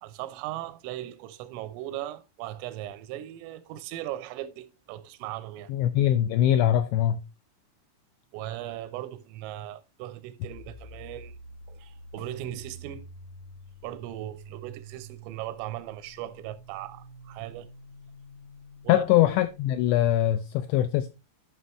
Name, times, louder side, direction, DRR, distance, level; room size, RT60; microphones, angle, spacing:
voice 1, 0.0-5.7 8.3-11.3 11.7-13.1 13.8-17.7 18.8-19.1, right 13 dB, 90° right, 3.5 m, -38 dB
voice 2, 5.7-7.2 18.9-21.1, left 12 dB, 85° left, 2.5 m, -22 dB
sound 1, 10.5-20.3, right 1 dB, 60° left, 1.8 m, -48 dB
12.5 x 5.7 x 3.1 m
omnidirectional pair, 5.7 m